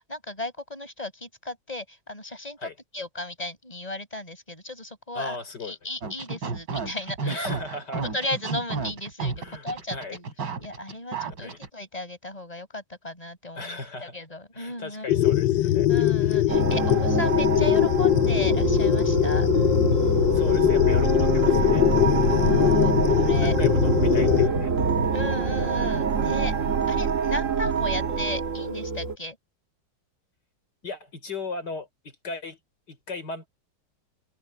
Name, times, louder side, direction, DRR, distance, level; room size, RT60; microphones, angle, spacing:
voice 1, 0.0-7.5 8.1-10.3 10.6-15.2 15.9-19.5 22.3-23.6 25.1-26.5 26.9-29.4, left 1 dB, 20° left, 5.5 m, -35 dB
voice 2, 5.1-5.8 7.3-8.0 9.3-10.2 11.4-11.6 13.6-14.1 14.5-16.4 16.8-17.0 20.3-21.8 23.4-24.7 30.8-32.6 32.9-33.5, left 3 dB, 65° left, 4.7 m, -37 dB
sound 1, 6.0-11.7, right 4 dB, 80° right, 3.9 m, -32 dB
sound 2, 15.1-24.5, left 12 dB, 80° left, 1.3 m, -22 dB
sound 3, 16.5-29.2, right 5 dB, 45° right, 1.7 m, -25 dB
omnidirectional pair, 2.0 m